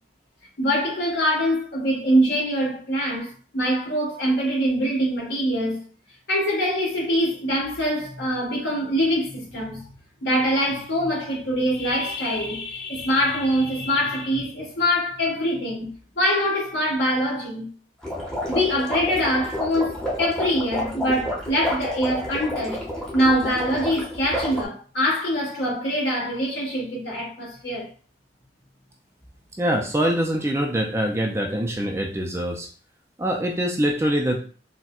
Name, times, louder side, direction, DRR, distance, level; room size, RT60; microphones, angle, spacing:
voice 1, 0.6-5.9 6.3-9.8 10.2-15.9 16.2-17.7 18.5-22.9 23.1-27.9, equal, 70° left, 1.4 m, -24 dB
sound 1, 18.0-24.6, equal, 5° left, 0.7 m, -30 dB
voice 2, 29.6-32.7 33.2-34.4, right 1 dB, 15° right, 0.4 m, -24 dB
4.2 x 2.1 x 2.4 m
head